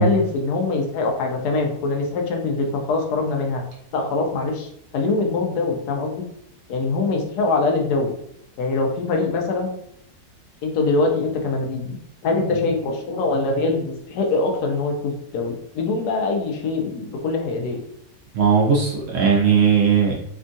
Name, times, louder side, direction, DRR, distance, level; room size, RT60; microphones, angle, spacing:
voice 1, 0.0-3.6 3.9-6.2 6.7-8.1 8.6-9.7 10.6-12.0 12.2-17.8, left 3 dB, 80° left, 2 dB, 1.2 m, -23 dB
voice 2, 18.3-20.1, right 6 dB, 65° right, -1 dB, 0.9 m, -17 dB
3.5 x 2.2 x 2.6 m, 0.75 s
omnidirectional pair, 1.7 m